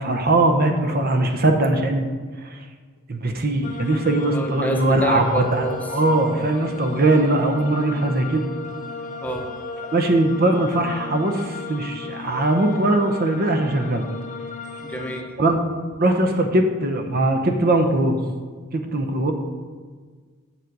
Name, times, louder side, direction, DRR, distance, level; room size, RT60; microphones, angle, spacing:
voice 1, 0.0-2.1 2.4-2.6 3.1-8.5 9.9-14.0 15.4-15.6 16.0-18.2 18.7-19.3, right 2 dB, 45° right, 5 dB, 0.8 m, -20 dB
sound 1, 3.6-15.2, left 4 dB, 35° left, 0.7 m, -35 dB
voice 2, 4.3-5.8 9.2-9.4 14.8-15.3, equal, 10° left, 2 dB, 0.9 m, -27 dB
7.8 x 7.2 x 5.3 m, 1.5 s
head